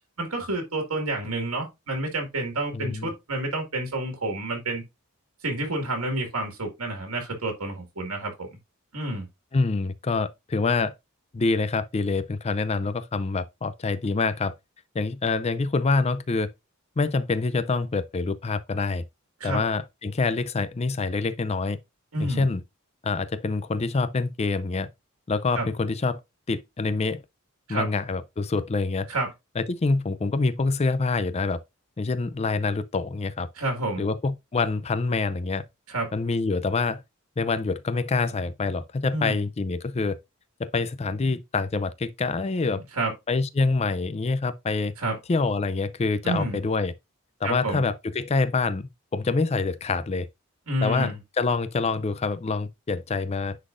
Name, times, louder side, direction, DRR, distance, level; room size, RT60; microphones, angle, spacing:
voice 1, 0.2-4.8 5.4-8.5 8.9-9.3 19.4-19.6 22.1-22.5 25.6-25.7 27.7-27.9 29.1-29.3 33.6-34.0 35.9-36.1 39.1-39.4 42.8-43.1 45.0-45.2 46.2-46.6 47.4-47.8 50.7-51.2, right 2 dB, 90° right, 1.9 m, -29 dB
voice 2, 2.7-3.1 9.5-10.9 11.3-14.5 14.9-16.5 17.0-19.0 19.4-21.8 22.2-22.6 23.0-24.9 25.3-26.2 26.5-27.2 27.7-29.1 29.6-31.6 32.0-33.5 34.0-35.6 36.1-37.0 37.4-40.2 40.6-42.8 43.3-44.9 45.3-46.9 47.4-50.3 50.8-53.6, left 3 dB, 30° left, 0.4 m, -26 dB
9.8 x 3.9 x 2.5 m
head